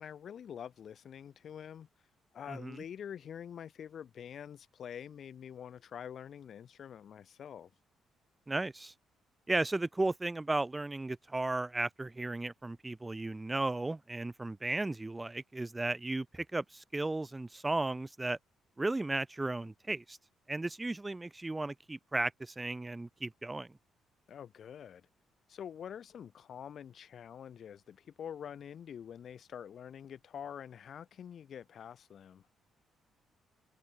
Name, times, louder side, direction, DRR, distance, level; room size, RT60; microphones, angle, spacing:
voice 1, 0.0-1.9 2.3-7.7 24.3-25.1 25.5-32.4, left 8 dB, 60° left, 2.7 m, -46 dB
voice 2, 2.5-2.8 8.5-8.9 9.5-18.4 18.8-20.2 20.5-23.7, right 2 dB, 15° right, 0.7 m, -35 dB
cardioid pair, 90°, 0 cm